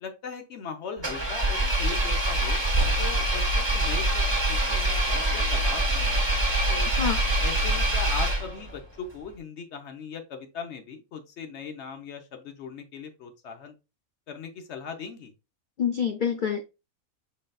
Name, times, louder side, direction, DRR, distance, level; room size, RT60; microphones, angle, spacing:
voice 1, 0.0-2.6 3.0-6.9 7.4-13.7 14.3-15.3, left 5 dB, 55° left, 6 dB, 1.1 m, -39 dB
Engine, 1.0-8.8, right 1 dB, 20° right, 1.1 m, -25 dB
voice 2, 6.8-7.2 15.8-16.6, left 7 dB, 85° left, 5 dB, 0.4 m, -27 dB
5.4 x 3.9 x 2.3 m, 0.27 s
omnidirectional pair, 1.5 m